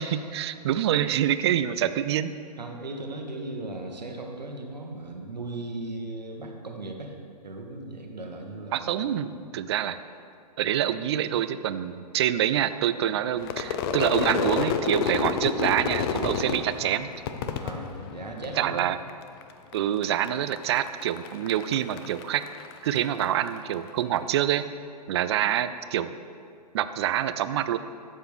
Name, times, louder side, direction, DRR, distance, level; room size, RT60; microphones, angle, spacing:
voice 1, 0.0-2.3 8.7-10.0 10.6-17.1 18.6-19.0 19.7-22.4 22.8-24.6 25.1-26.2 26.7-27.8, right 11 dB, 40° right, 13 dB, 0.4 m, -26 dB
voice 2, 2.6-7.1 7.4-8.9 17.6-18.9, right 2 dB, 85° right, 2 dB, 1.4 m, -37 dB
Crowd / Fireworks, 13.4-18.8 19.1-19.7 20.0-23.6, left 6 dB, 35° left, 0.6 m, -30 dB
12.5 x 7.3 x 3.4 m, 2.3 s
figure-of-eight pair, 125°, 21 cm